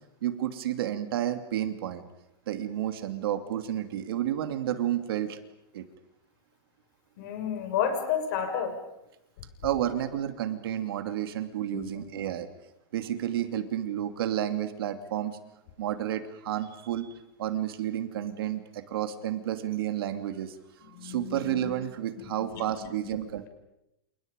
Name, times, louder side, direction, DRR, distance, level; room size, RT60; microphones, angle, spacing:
voice 1, 0.2-2.0 2.5-5.4 5.7-5.8 9.6-12.5 12.9-15.4 15.8-20.6 20.8-23.5, right 11 dB, 70° right, 7 dB, 2.8 m, -31 dB
voice 2, 7.2-8.7 11.7-11.9 20.8-21.6 22.2-22.6 23.0-23.1, left 8 dB, 50° left, 6 dB, 6.1 m, -31 dB
29.5 x 29.0 x 5.4 m, 0.85 s
supercardioid pair, 170°, 13 cm